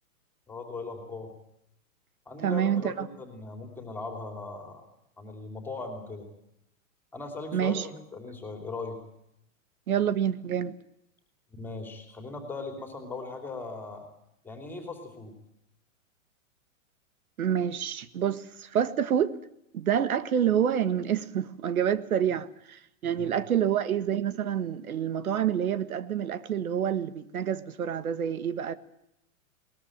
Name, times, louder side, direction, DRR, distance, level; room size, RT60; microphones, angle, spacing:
voice 1, 0.5-1.3 2.3-4.8 5.2-6.3 7.1-9.0 11.5-14.0 14.4-15.3 23.2-23.3, left 3 dB, 5° left, 3.1 m, -39 dB
voice 2, 2.4-3.1 7.5-7.8 9.9-10.7 17.4-19.3 19.7-28.7, right 9 dB, 85° right, 1.7 m, -27 dB
21.5 x 20.5 x 8.8 m
hypercardioid pair, 175°, 42 cm